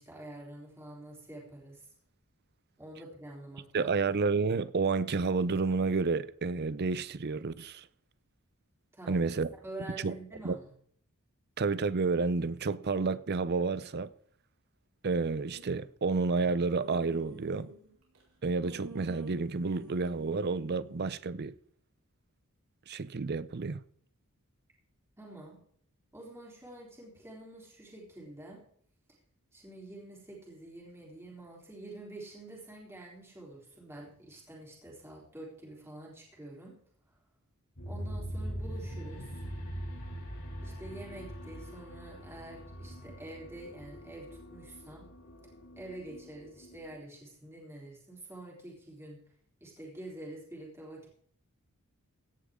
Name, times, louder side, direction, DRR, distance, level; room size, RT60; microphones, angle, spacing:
voice 1, 0.0-1.9 2.8-4.0 8.9-9.3 9.6-10.7 25.2-25.6 26.1-28.6 29.5-36.8 37.9-39.4 40.6-45.1 45.8-49.2 49.6-51.1, right 1 dB, 10° right, 3.6 m, -47 dB
voice 2, 3.7-7.9 9.1-9.5 10.0-10.1 10.4-10.6 11.6-14.1 15.0-17.7 18.4-21.5 22.9-23.8, right 4 dB, 50° right, 0.6 m, -30 dB
sound 1, 15.1-15.8 16.4-18.2 18.6-21.1, right 1 dB, 80° right, 4.8 m, -48 dB
sound 2, 37.8-47.0, equal, 80° left, 5.2 m, -42 dB
16.5 x 10.5 x 3.7 m
head